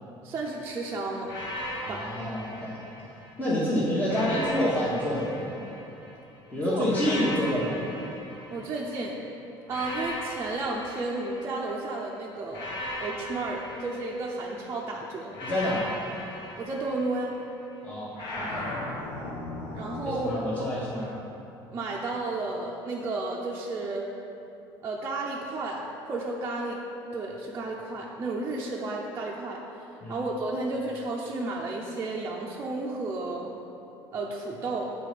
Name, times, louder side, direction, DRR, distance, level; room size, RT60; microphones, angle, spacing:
voice 1, 0.2-1.4 1.9-2.1 6.7-7.2 8.5-9.2 9.7-12.7 13.0-15.4 16.6-17.4 19.7-20.3 20.6-20.7 21.7-24.1 24.8-25.8 26.1-26.8 27.1-29.6 30.1-33.5 34.1-34.9, right 2 dB, 25° right, -3 dB, 0.5 m, -32 dB
sound 1, 1.3-3.4 4.1-6.2 6.9-9.1 9.7-11.8 12.5-14.7 15.3-17.5 18.2-20.2, left 1 dB, 55° left, 1.2 m, -38 dB
voice 2, 1.8-2.8 3.4-5.5 6.5-7.9 15.4-15.9 17.8-18.7 20.0-21.1 30.0-30.2, left 1 dB, 15° left, -9 dB, 1.1 m, -28 dB
8.0 x 4.2 x 4.9 m, 2.9 s
cardioid pair, 155°, 9 cm